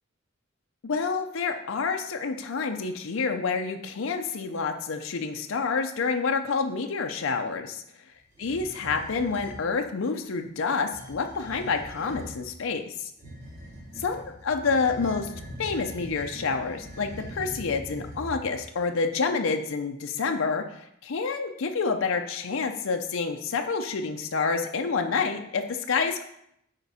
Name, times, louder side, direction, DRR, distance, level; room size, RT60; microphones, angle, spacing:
voice 1, 0.8-7.8 8.4-13.1 13.9-15.3 15.6-26.2, left 4 dB, 75° left, 4 dB, 0.6 m, -28 dB
sound 1, 8.3-9.6 10.8-12.4 13.2-18.7, equal, 35° right, 3.1 m, -42 dB
9.0 x 4.5 x 4.1 m, 0.76 s
head